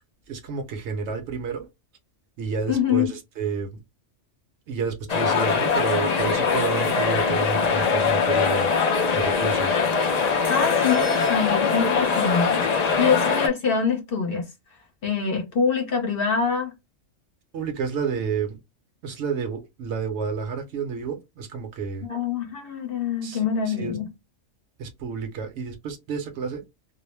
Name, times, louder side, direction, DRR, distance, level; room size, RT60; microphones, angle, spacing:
voice 1, 0.3-1.7 2.4-3.8 4.7-8.7 9.1-9.9 17.5-18.6 19.0-22.1 23.2-24.0 24.8-26.6, right 6 dB, 65° right, 0.8 m, -30 dB
voice 2, 2.7-3.1 10.5-14.5 15.0-16.7 22.0-24.1, left 6 dB, 50° left, 0.8 m, -25 dB
sound 1, 5.1-13.5, left 5 dB, 90° left, 0.3 m, -22 dB
2.3 x 2.0 x 3.1 m
omnidirectional pair, 1.3 m